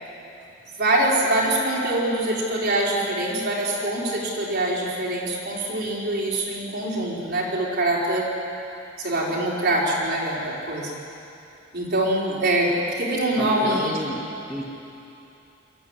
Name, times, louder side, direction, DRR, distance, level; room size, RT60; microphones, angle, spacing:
voice 1, 0.8-8.3 9.0-11.0 11.7-13.9, right 1 dB, 55° right, -4 dB, 4.7 m, -24 dB
voice 2, 13.4-14.6, equal, 5° right, -3 dB, 1.8 m, -32 dB
23.5 x 13.5 x 9.8 m, 2.8 s
head